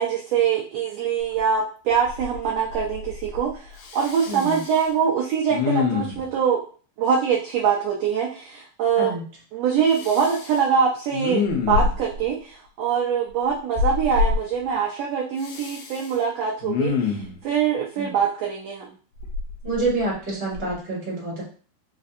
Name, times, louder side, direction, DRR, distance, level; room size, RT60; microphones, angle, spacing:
voice 1, 0.0-6.6 7.0-9.2 9.5-18.8, right 7 dB, 80° right, -3 dB, 1.5 m, -23 dB
Respiratory sounds, 1.4-1.5 1.9-2.5 2.7-3.5 3.8-4.8 5.5-6.3 9.9-10.6 11.1-12.2 13.8-14.4 15.4-16.1 16.6-17.4 19.2-20.1 20.5-20.7, left 5 dB, 80° left, 2.0 m, -26 dB
voice 2, 4.3-4.6 9.0-9.2 17.9-18.1 19.6-21.4, right 2 dB, 10° right, -6 dB, 0.6 m, -27 dB
5.0 x 2.4 x 2.5 m, 0.40 s
omnidirectional pair, 3.6 m